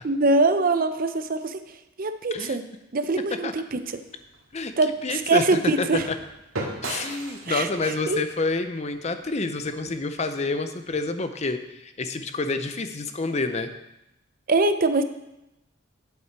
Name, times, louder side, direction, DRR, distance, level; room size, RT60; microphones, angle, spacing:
voice 1, 0.0-1.6 2.0-2.6 2.9-4.0 4.8-6.1 7.5-8.2 14.5-15.0, right 3 dB, 40° right, 10 dB, 0.5 m, -23 dB
sound 1, 3.7-9.9, right 2 dB, 85° right, 1.9 m, -39 dB
voice 2, 5.0-6.2 6.8-13.7, left 3 dB, 30° left, 9 dB, 0.5 m, -28 dB
8.4 x 8.2 x 4.6 m, 0.89 s
head